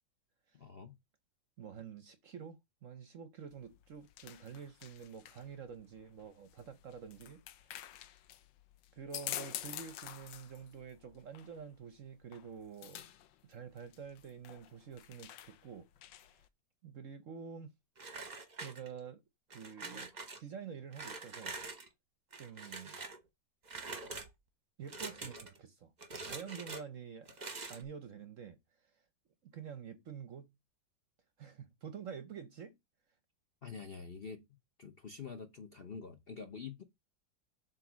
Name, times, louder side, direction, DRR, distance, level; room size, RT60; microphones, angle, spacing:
voice 1, 0.5-0.9 33.6-34.5 34.8-36.8, left 5 dB, 45° left, 0.7 m, -46 dB
voice 2, 1.6-7.7 8.9-13.1 13.4-15.9 16.3-16.4 16.8-17.7 18.6-19.2 19.5-20.1 20.4-21.6 22.4-23.0 24.8-27.3 27.7-28.9 29.5-30.5 31.4-32.8, right 7 dB, 55° right, 0.9 m, -48 dB
sound 1, 3.5-16.5, left 12 dB, 90° left, 1.4 m, -49 dB
sound 2, 18.0-19.1 19.5-20.4 20.9-21.9 22.3-23.2 23.7-24.3 24.9-25.6 26.0-26.8 27.3-27.8, right 3 dB, 30° right, 0.9 m, -45 dB
7.5 x 3.2 x 6.1 m
omnidirectional pair, 2.0 m